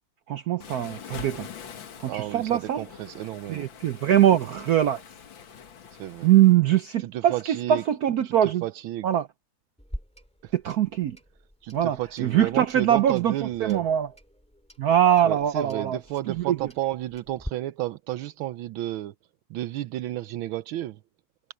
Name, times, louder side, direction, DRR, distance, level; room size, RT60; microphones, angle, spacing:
voice 1, 0.3-1.5 2.0-2.8 3.5-5.0 6.2-8.6 9.0-9.3 10.5-11.2 11.7-13.3 13.6-14.1 14.8-16.0 16.3-16.6, right 11 dB, 65° right, 0.9 m, -22 dB
Waves surf, 0.6-6.5, left 7 dB, 70° left, 2.3 m, -44 dB
voice 2, 2.0-3.7 6.0-6.3 7.0-7.8 8.2-9.1 10.4-10.5 11.6-13.8 15.2-19.1 19.5-21.0, right 14 dB, 85° right, 1.5 m, -32 dB
Clock, 9.8-17.5, equal, 5° left, 3.7 m, -45 dB
omnidirectional pair, 2.2 m